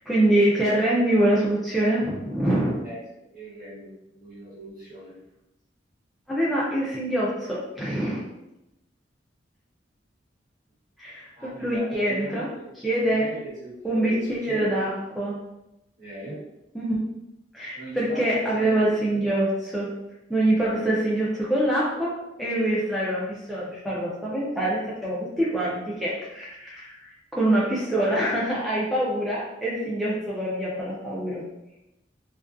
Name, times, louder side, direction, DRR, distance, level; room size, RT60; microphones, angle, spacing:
voice 1, 0.1-2.8 6.3-8.2 11.0-12.5 12.8-13.3 13.8-15.3 16.7-17.0 17.5-19.9 20.3-22.1 22.4-31.4, right 1 dB, ahead, -8 dB, 0.3 m, -25 dB
voice 2, 3.3-5.1 11.4-12.7 13.0-14.9 16.0-16.4 17.7-19.3 20.5-20.9, equal, 50° right, -9 dB, 1.2 m, -39 dB
2.4 x 2.2 x 2.4 m, 0.90 s
head